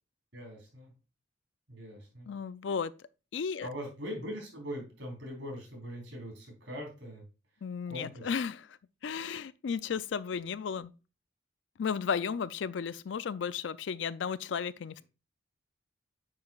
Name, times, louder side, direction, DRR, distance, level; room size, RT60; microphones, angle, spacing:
voice 1, 0.3-0.9 1.7-2.3 3.6-7.2 7.9-8.3, equal, 80° right, 3.8 m, -41 dB
voice 2, 2.3-2.9 3.3-3.7 7.6-8.7 9.0-10.9 11.8-15.0, left 6 dB, 75° left, 0.4 m, -34 dB
8.8 x 5.7 x 2.4 m
head